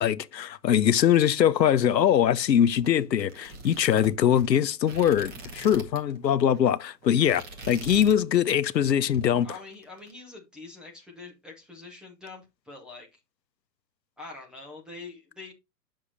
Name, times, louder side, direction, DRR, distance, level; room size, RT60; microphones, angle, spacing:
voice 1, 0.0-9.5, left 9 dB, 90° left, 0.7 m, -22 dB
sound 1, 2.8-6.2 6.4-6.7 7.0-8.2 8.5-8.8 9.1-10.1, right 2 dB, 20° right, 1.2 m, -42 dB
voice 2, 9.4-13.2 14.2-15.5, left 3 dB, ahead, 0.5 m, -44 dB
8.1 x 6.3 x 2.6 m
hypercardioid pair, 130°, 49 cm